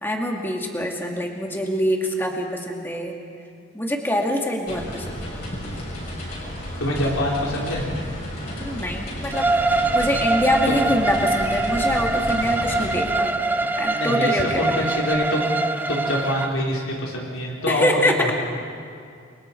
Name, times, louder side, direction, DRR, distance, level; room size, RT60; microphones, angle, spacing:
voice 1, 0.0-3.2 3.7-5.1 8.6-13.3 13.8-14.7 17.7-18.3, equal, 10° left, 0 dB, 2.2 m, -24 dB
sound 1, 4.7-13.0, equal, 50° left, 7.0 m, -32 dB
voice 2, 6.8-7.9 10.7-10.9 13.9-15.6 15.9-18.3, left 1 dB, 85° left, -3 dB, 3.7 m, -25 dB
Bowed string instrument, 9.3-16.5, right 2 dB, 10° right, 0.5 m, -23 dB
29.5 x 24.0 x 4.6 m, 2.4 s
head